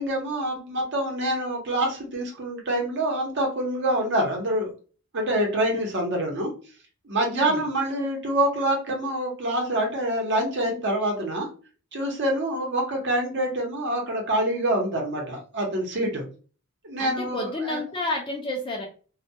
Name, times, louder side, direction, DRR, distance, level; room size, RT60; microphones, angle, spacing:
voice 1, 0.0-4.7 5.1-6.5 7.0-11.5 11.9-16.3 16.8-17.8, right 1 dB, 55° right, 1 dB, 0.8 m, -26 dB
voice 2, 7.2-7.7 17.0-18.8, left 2 dB, 25° left, 1 dB, 0.4 m, -30 dB
2.2 x 2.2 x 2.7 m, 0.38 s
head